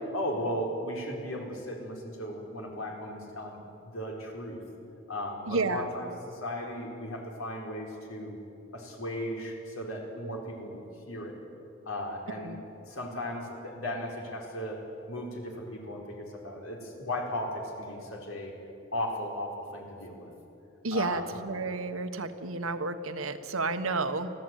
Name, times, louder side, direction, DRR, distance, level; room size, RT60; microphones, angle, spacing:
voice 1, 0.1-3.6 3.8-4.6 5.1-8.4 8.7-11.4 11.8-12.6 12.9-18.5 18.9-20.3 20.9-21.4, left 1 dB, 85° left, 0 dB, 4.5 m, -36 dB
voice 2, 5.5-5.9 12.4-12.6 20.8-24.3, right 3 dB, 80° right, 8 dB, 1.4 m, -31 dB
24.5 x 16.0 x 9.2 m, 2.9 s
head